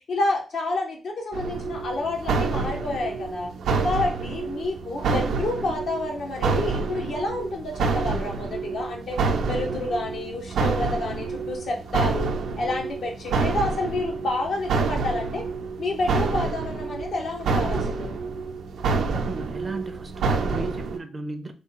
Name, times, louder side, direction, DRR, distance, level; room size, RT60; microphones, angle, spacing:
voice 1, 0.1-3.5 3.8-9.2 9.5-12.3 12.6-15.4 15.8-18.2, left 2 dB, 65° left, 1.0 m, -29 dB
sound 1, 1.3-21.0, right 4 dB, 85° right, 0.5 m, -28 dB
voice 2, 19.0-21.5, right 3 dB, 30° right, 0.5 m, -36 dB
3.3 x 2.3 x 3.7 m
cardioid pair, 110°, 0 cm